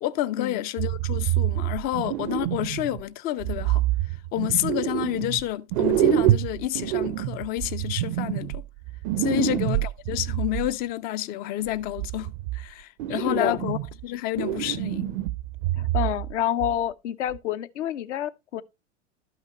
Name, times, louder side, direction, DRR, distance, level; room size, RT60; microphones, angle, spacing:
voice 1, 0.0-3.8 4.3-8.6 9.2-15.2, left 14 dB, 25° left, 0.3 m, -29 dB
sound 1, 0.8-3.0 3.4-5.4 5.7-10.7 11.7-12.6 13.0-14.0 14.4-16.4 16.6-16.8 17.3-17.4, right 15 dB, 45° right, 0.5 m, -27 dB
voice 2, 9.3-9.6 13.1-13.6 15.8-18.6, left 11 dB, 70° left, 0.8 m, -29 dB
12.0 x 5.7 x 2.9 m
hypercardioid pair, 100°, 37 cm